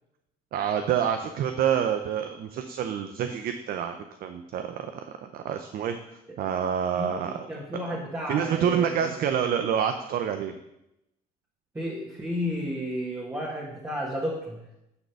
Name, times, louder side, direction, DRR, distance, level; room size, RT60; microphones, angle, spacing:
voice 1, 0.5-4.9 5.2-7.5 7.9-8.0 8.3-10.5, right 8 dB, 60° right, 7 dB, 0.7 m, -27 dB
voice 2, 7.0-9.2 11.7-14.7, equal, 15° right, -4 dB, 1.8 m, -32 dB
9.6 x 4.1 x 7.0 m, 0.85 s
cardioid pair, 110°, 17 cm